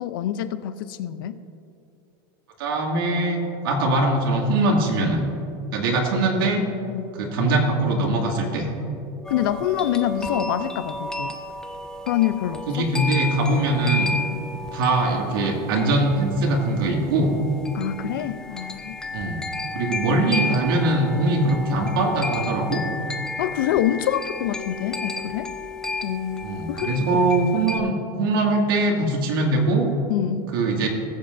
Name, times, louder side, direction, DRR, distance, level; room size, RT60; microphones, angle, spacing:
voice 1, 0.0-1.4 6.9-7.1 9.3-11.4 12.1-12.9 14.3-14.4 17.7-19.0 23.4-25.5 26.0-26.9 30.1-30.5, left 11 dB, 75° left, 12 dB, 0.6 m, -26 dB
voice 2, 2.6-5.3 5.7-6.6 7.2-8.7 12.7-14.1 14.7-17.4 19.1-19.4 19.7-22.8 26.4-29.9 30.5-30.9, right 2 dB, 80° right, 0 dB, 2.1 m, -22 dB
sound 1, 9.2-27.8, left 2 dB, 5° left, 0.3 m, -33 dB
19.5 x 7.7 x 2.6 m, 2.7 s
supercardioid pair, 170°, 12 cm